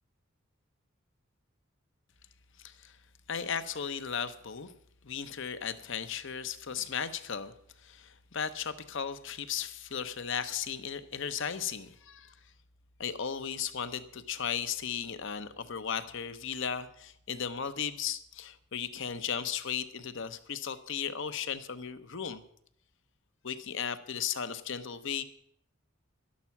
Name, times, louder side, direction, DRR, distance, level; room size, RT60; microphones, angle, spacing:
voice 1, 2.6-3.0 3.3-4.7 5.0-7.5 7.8-12.3 13.0-22.4 23.4-25.2, left 7 dB, 65° left, 12 dB, 0.9 m, -36 dB
12.0 x 11.5 x 5.9 m, 0.66 s
head